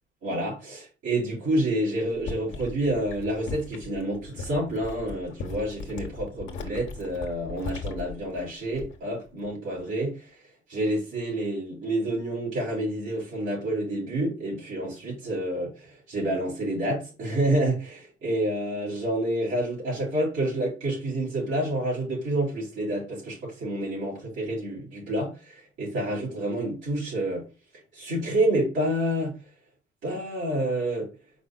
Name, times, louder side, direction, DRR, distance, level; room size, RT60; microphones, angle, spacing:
voice 1, 0.2-10.3 10.7-27.4 27.9-29.4 30.0-31.1, right 1 dB, 85° right, 2.8 m, -28 dB
sound 1, 2.0-9.1 9.4-9.8, left 4 dB, 75° left, 1.1 m, -38 dB
5.1 x 4.5 x 2.2 m
cardioid pair, 90°, 20 cm